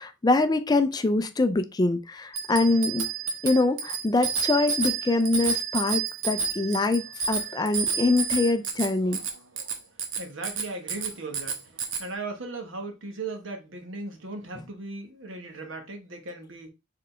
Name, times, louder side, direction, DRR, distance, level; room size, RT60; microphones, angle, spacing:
voice 1, 0.0-3.1 3.4-9.2, left 2 dB, 20° left, 0.4 m, -24 dB
Bicycle bell, 2.3-12.0, right 6 dB, 85° right, 0.9 m, -30 dB
voice 2, 10.2-11.7 12.0-16.7, right 2 dB, 70° right, 1.2 m, -37 dB
4.5 x 3.8 x 3.1 m
head